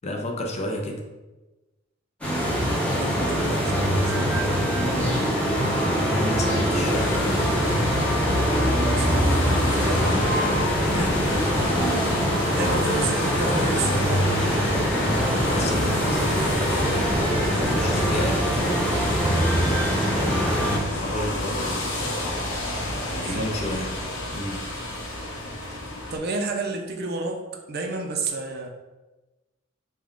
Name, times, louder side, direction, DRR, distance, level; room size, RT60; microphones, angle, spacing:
voice 1, 0.0-1.0 5.6-7.3 9.5-9.9 10.9-11.4 15.0-16.9 17.5-19.6 20.1-21.9 23.2-24.0 24.3-24.7, left 1 dB, 35° left, 2 dB, 0.4 m, -32 dB
sound 1, 2.2-20.8, equal, 5° left, 0.8 m, -23 dB
voice 2, 3.0-4.7 8.7-9.4 9.6-10.1 12.5-14.7 23.1-23.5 26.1-28.7, right 3 dB, 50° right, 2 dB, 0.5 m, -31 dB
sound 2, 6.7-26.2, left 1 dB, 90° left, 0.8 m, -29 dB
3.5 x 2.3 x 3.7 m, 1.1 s
head